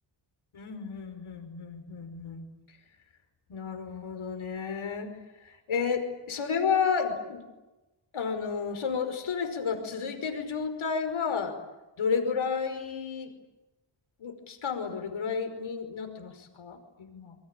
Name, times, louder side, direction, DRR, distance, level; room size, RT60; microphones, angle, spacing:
voice 1, 0.5-2.4 3.5-5.1 5.4-7.4 8.1-11.6 12.0-13.3 14.2-17.4, left 6 dB, 80° left, 7 dB, 5.3 m, -31 dB
28.0 x 23.5 x 9.1 m, 1.1 s
wide cardioid pair, 120°, 47 cm